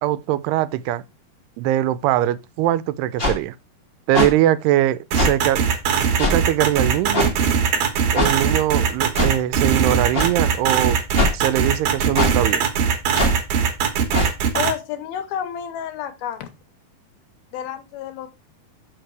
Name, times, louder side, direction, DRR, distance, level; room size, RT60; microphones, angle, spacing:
voice 1, 0.0-1.0 1.6-3.6 4.1-5.6 6.2-7.4 8.1-11.0 11.3-12.7, right 13 dB, 85° right, 2.6 m, -21 dB
sound 1, 3.2-3.3 4.1-4.3 5.1-5.3 6.2-6.4 7.1-7.3 8.1-8.3 9.1-9.3 10.1-10.3 11.1-11.3 12.1-12.3 13.1-13.3 14.1-14.3, left 2 dB, 45° left, 0.7 m, -20 dB
sound 2, 5.1-14.7, right 7 dB, 60° right, 2.4 m, -20 dB
voice 2, 14.5-16.5 17.5-18.3, left 9 dB, 75° left, 2.7 m, -29 dB
6.6 x 6.0 x 4.6 m
omnidirectional pair, 4.6 m